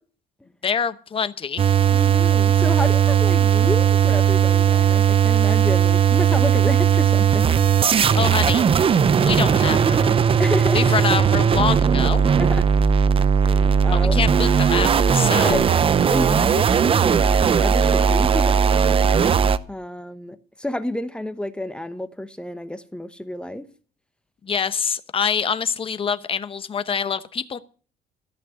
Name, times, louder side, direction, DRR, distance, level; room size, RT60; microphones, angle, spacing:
voice 1, 0.6-1.6 8.1-8.6 9.2-10.2 10.7-12.3 13.9-15.6 24.4-27.6, left 6 dB, 35° left, 0.9 m, -25 dB
sound 1, 1.6-19.6, right 7 dB, 35° right, 0.6 m, -18 dB
voice 2, 1.9-7.5 10.4-10.9 12.4-12.6 13.4-14.2 15.3-18.6 19.7-23.7, left 1 dB, 5° left, 0.9 m, -29 dB
14.0 x 6.0 x 8.2 m
cardioid pair, 110°, 17 cm